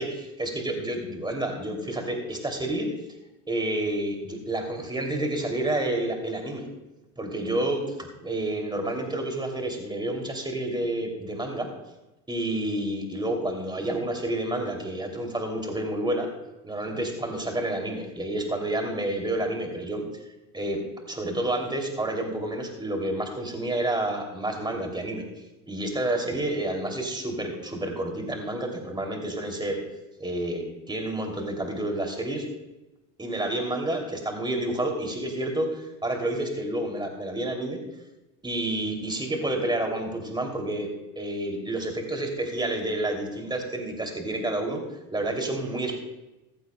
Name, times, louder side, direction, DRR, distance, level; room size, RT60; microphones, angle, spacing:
voice 1, 0.0-2.9 3.5-6.7 7.2-11.7 12.3-16.3 16.6-20.0 20.5-20.8 21.1-25.2 25.7-29.8 30.2-32.4 33.2-37.8 38.4-40.9 41.1-44.8 45.1-46.0, right 1 dB, 10° right, 2 dB, 3.0 m, -29 dB
15.0 x 14.5 x 2.3 m, 1.0 s
hypercardioid pair, 85°, 46 cm